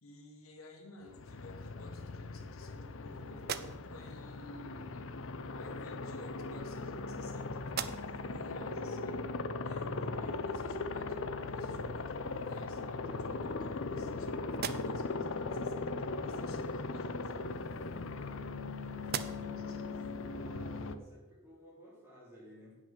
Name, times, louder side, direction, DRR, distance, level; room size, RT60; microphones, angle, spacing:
voice 1, 0.0-5.2 5.5-9.3 9.6-17.3 19.4-19.8, left 1 dB, 85° left, 2 dB, 1.7 m, -53 dB
Aircraft, 1.1-21.0, left 3 dB, 65° left, 0.6 m, -39 dB
sound 1, 3.3-4.2 5.3-5.5 6.4-7.3 7.6-8.4 8.9-9.0 11.6-11.7 12.2-12.8 13.4-14.2 14.5-15.2 17.2-18.7 19.0-19.7, right 8 dB, 50° right, 0.5 m, -43 dB
voice 2, 19.5-22.8, equal, 10° right, -5 dB, 3.8 m, -55 dB
9.0 x 6.2 x 6.6 m, 1.2 s
head